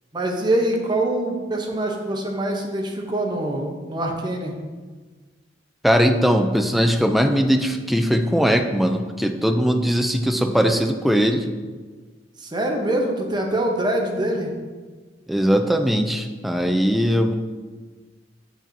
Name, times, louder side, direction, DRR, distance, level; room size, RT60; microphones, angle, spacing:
voice 1, 0.1-4.5 12.4-14.5, right 1 dB, 25° right, 1 dB, 0.7 m, -24 dB
voice 2, 5.8-11.5 15.3-17.3, equal, ahead, 6 dB, 0.3 m, -20 dB
7.2 x 5.0 x 2.6 m, 1.4 s
head